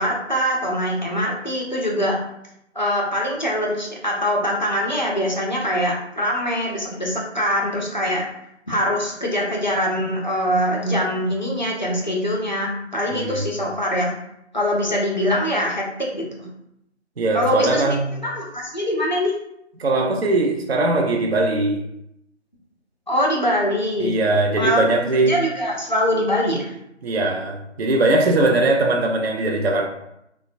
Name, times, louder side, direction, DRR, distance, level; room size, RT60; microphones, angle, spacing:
voice 1, 0.0-2.2 2.8-8.2 8.7-14.1 14.5-16.3 17.3-18.0 18.2-19.3 23.1-24.2 24.6-26.7, equal, 40° left, 0.5 m, -23 dB
voice 2, 13.1-13.4 17.2-18.2 19.8-21.8 24.0-25.4 27.0-29.9, right 2 dB, 60° right, 0.5 m, -20 dB
3.1 x 2.1 x 2.5 m
figure-of-eight pair, 160°, 36 cm